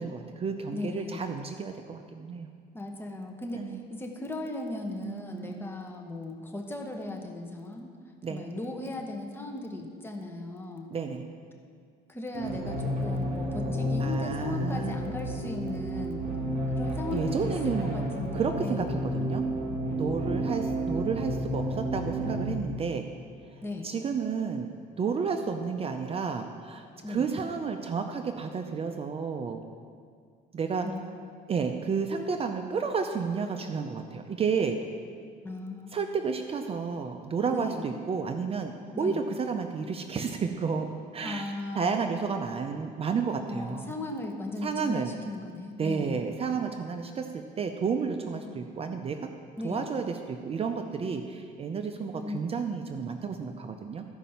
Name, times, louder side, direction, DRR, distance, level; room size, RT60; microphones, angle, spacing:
voice 1, 0.0-2.5 3.5-3.8 5.0-5.7 8.2-8.4 10.9-11.3 14.0-14.9 17.1-19.5 20.0-23.1 23.5-24.7 25.0-29.6 30.5-30.9 31.5-34.8 35.9-44.0 44.6-45.2 45.8-49.3 49.6-54.1, right 5 dB, 35° right, 6 dB, 0.6 m, -31 dB
voice 2, 0.7-1.3 2.7-7.9 8.3-10.9 12.1-16.2 16.7-18.9 23.6-23.9 27.0-27.3 30.8-31.1 35.4-35.9 37.5-37.8 38.9-39.2 41.2-42.0 43.5-46.3 48.4-48.5 49.6-49.9 52.1-52.4, left 2 dB, 15° left, 2 dB, 1.2 m, -37 dB
sound 1, 12.3-22.5, equal, 50° right, 2.3 m, -31 dB
13.5 x 5.1 x 5.7 m, 2.1 s
cardioid pair, 110°, 17 cm